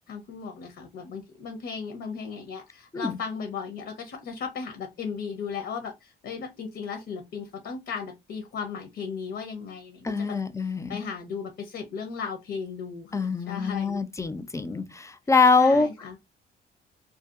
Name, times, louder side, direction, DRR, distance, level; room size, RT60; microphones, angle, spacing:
voice 1, 0.1-10.4 10.9-14.0 15.6-16.2, left 6 dB, 70° left, 0.7 m, -36 dB
voice 2, 10.0-11.0 13.1-15.9, left 4 dB, 15° left, 0.3 m, -24 dB
2.7 x 2.2 x 2.3 m
cardioid pair, 90°, 20 cm